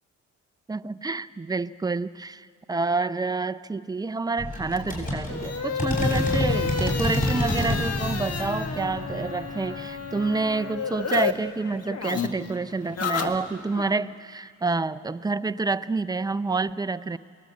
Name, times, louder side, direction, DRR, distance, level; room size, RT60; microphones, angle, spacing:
voice 1, 0.7-17.2, right 3 dB, 15° right, 13 dB, 0.5 m, -28 dB
sound 1, 4.4-10.8, left 1 dB, 25° left, 8.0 m, -29 dB
sound 2, 4.7-11.3 11.6-13.9, left 6 dB, 55° left, 1.6 m, -31 dB
23.0 x 18.5 x 8.3 m, 2.1 s
cardioid pair, 90°, 30 cm